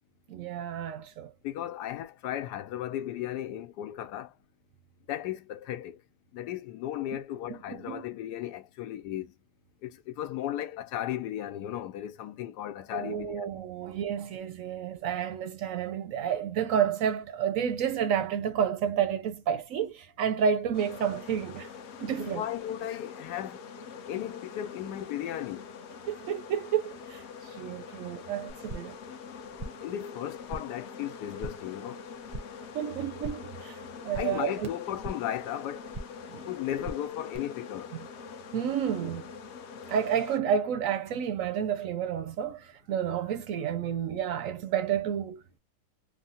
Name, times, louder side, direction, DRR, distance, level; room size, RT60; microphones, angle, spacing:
voice 1, 0.3-1.3 7.5-8.0 12.9-21.7 22.0-22.4 26.1-29.0 32.7-34.7 36.3-36.4 37.9-38.0 38.5-39.3 39.9-45.6, right 8 dB, 70° right, 0.8 m, -30 dB
voice 2, 1.4-4.3 5.1-6.0 6.3-9.3 9.8-13.5 22.2-23.7 24.1-25.7 29.8-32.1 34.1-35.9 36.5-37.9, left 12 dB, 80° left, 1.2 m, -35 dB
sound 1, 20.7-40.4, left 6 dB, 65° left, 0.7 m, -44 dB
sound 2, 28.5-29.0 29.3-29.9 30.2-30.9 31.1-31.7 32.0-32.7 33.0-33.6 33.8-35.4 35.7-36.3 36.6-37.4, right 1 dB, 40° right, 0.5 m, -42 dB
3.5 x 2.1 x 2.7 m
omnidirectional pair, 1.8 m